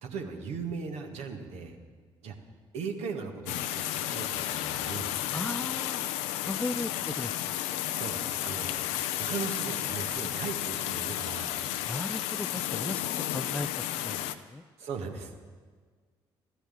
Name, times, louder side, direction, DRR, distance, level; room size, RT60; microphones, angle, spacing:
voice 1, 0.0-1.8 2.2-2.3 2.7-5.1 7.9-8.7 9.0-11.6 14.8-15.5, right 5 dB, 65° right, 4 dB, 1.8 m, -38 dB
sound 1, 3.5-14.3, left 12 dB, 70° left, 0.7 m, -32 dB
voice 2, 5.3-6.0 6.4-7.6 11.9-13.0 13.3-13.7 14.0-14.6, left 2 dB, 10° left, 15 dB, 0.4 m, -36 dB
14.0 x 10.0 x 9.5 m, 1.5 s
figure-of-eight pair, 45°, 12 cm